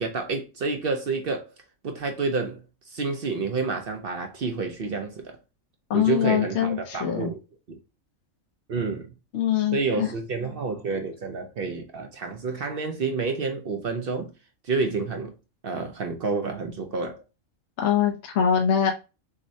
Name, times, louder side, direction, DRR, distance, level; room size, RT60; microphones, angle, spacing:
voice 1, 0.0-1.5 1.8-5.4 5.9-7.4 7.7-7.8 8.7-9.1 9.7-14.3 14.6-15.3 15.6-17.2, right 4 dB, 55° right, 0.7 m, -29 dB
voice 2, 5.9-7.3 9.3-10.1 17.8-18.9, left 8 dB, 65° left, 0.9 m, -23 dB
6.2 x 2.1 x 2.7 m
omnidirectional pair, 1.4 m